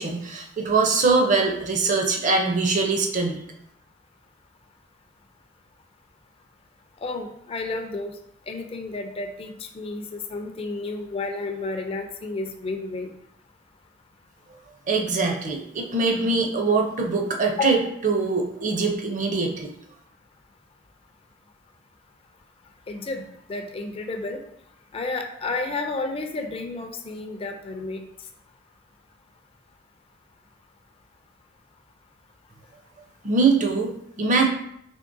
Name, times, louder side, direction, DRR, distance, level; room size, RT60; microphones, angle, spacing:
voice 1, 0.0-3.4 14.9-19.7 33.2-34.5, right 4 dB, 40° right, 2 dB, 0.5 m, -23 dB
voice 2, 7.0-8.1 8.5-13.1 17.6-17.8 22.9-23.2 23.5-24.4 24.9-28.1, left 3 dB, 30° left, 4 dB, 0.4 m, -31 dB
3.6 x 3.3 x 2.5 m, 0.73 s
head